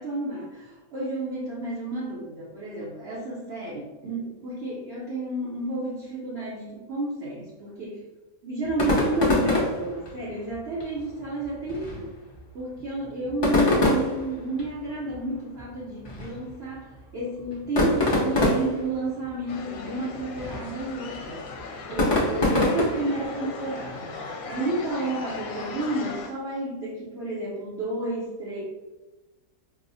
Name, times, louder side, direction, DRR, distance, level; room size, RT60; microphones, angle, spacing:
voice 1, 0.0-8.0 8.4-12.1 12.5-21.5 21.9-28.6, right 2 dB, 55° right, -6 dB, 0.9 m, -31 dB
sound 1, 8.6-23.3, left 1 dB, 25° left, 0.5 m, -27 dB
sound 2, 19.5-26.3, left 4 dB, 75° left, 1.0 m, -37 dB
4.7 x 2.0 x 2.6 m, 1.2 s
omnidirectional pair, 1.5 m